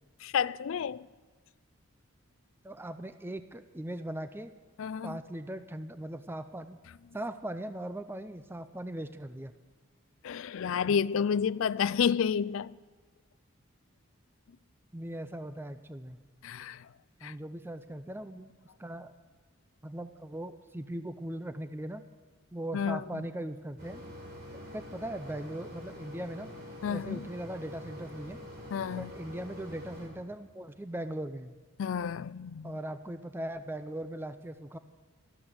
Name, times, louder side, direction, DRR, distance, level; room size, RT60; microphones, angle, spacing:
voice 1, 0.2-1.1 4.8-5.2 10.2-12.8 16.4-16.9 17.2-17.3 22.7-23.2 26.8-27.3 28.7-29.1 31.8-32.7, left 7 dB, 65° left, 0.4 m, -30 dB
voice 2, 2.6-4.5 5.0-6.8 7.1-9.5 14.9-16.2 17.2-18.5 18.8-19.1 19.8-22.0 22.5-24.0 24.7-26.5 26.9-28.4 28.9-31.5 32.6-34.8, right 1 dB, 10° right, 0.5 m, -39 dB
Mechanisms, 23.8-30.1, left 1 dB, 45° right, 5.2 m, -46 dB
13.0 x 12.0 x 7.8 m
head